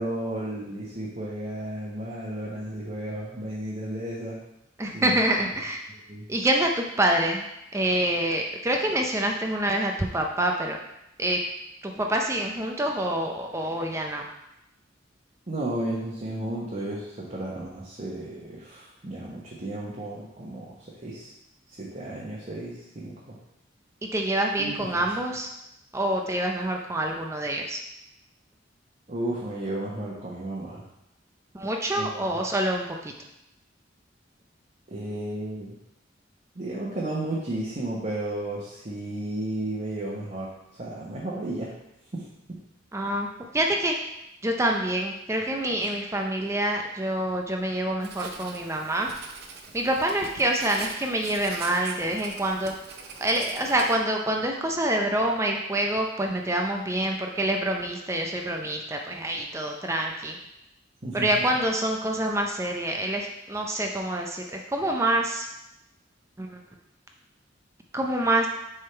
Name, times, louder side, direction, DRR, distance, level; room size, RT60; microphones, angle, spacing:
voice 1, 0.0-4.4 4.9-5.2 5.9-6.3 15.5-20.8 21.0-21.3 21.7-23.4 24.6-24.9 29.1-30.8 32.0-32.2 34.9-35.8 36.5-40.5 40.8-41.7 42.1-42.3 45.8-45.9 61.0-61.4, right 1 dB, 40° right, -5 dB, 1.0 m, -33 dB
voice 2, 4.8-5.8 6.3-7.5 7.7-10.8 11.2-11.4 11.8-14.3 24.1-25.5 25.9-27.8 31.5-33.1 42.9-44.0 44.4-49.1 49.7-52.8 53.2-60.4 61.1-65.5 66.4-66.6 67.9-68.5, right 1 dB, 15° right, 2 dB, 0.5 m, -26 dB
Writing, 48.0-54.0, right 4 dB, 60° right, 0.7 m, -42 dB
6.6 x 3.6 x 4.4 m, 0.85 s
head